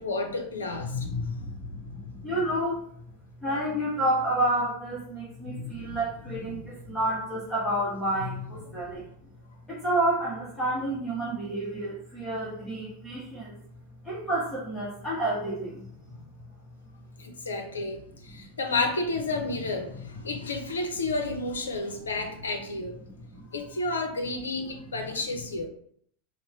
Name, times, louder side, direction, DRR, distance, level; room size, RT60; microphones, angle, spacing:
voice 1, 0.0-1.9 5.4-6.0 6.3-6.6 8.2-8.4 17.2-22.9 23.5-25.7, left 3 dB, 75° left, 4 dB, 0.5 m, -31 dB
voice 2, 1.1-2.9 3.4-9.1 9.7-13.6 14.0-15.9 18.3-18.5 23.0-23.5, right 1 dB, 10° left, -8 dB, 1.1 m, -30 dB
2.9 x 2.1 x 3.5 m, 0.64 s
figure-of-eight pair, 85°, 0 cm